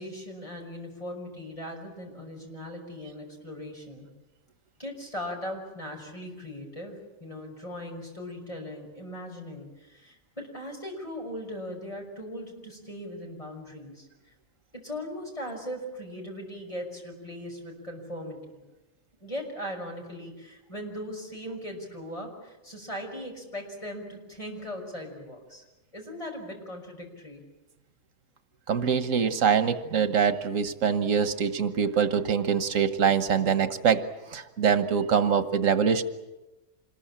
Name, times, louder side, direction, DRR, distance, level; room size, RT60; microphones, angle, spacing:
voice 1, 0.0-4.1 4.8-14.3 14.7-18.6 19.2-25.6 25.9-27.4, equal, 25° left, 1 dB, 6.1 m, -39 dB
voice 2, 28.7-34.0 34.3-36.0, right 7 dB, 90° right, 10 dB, 1.6 m, -24 dB
27.0 x 21.0 x 8.8 m, 1.1 s
omnidirectional pair, 1.3 m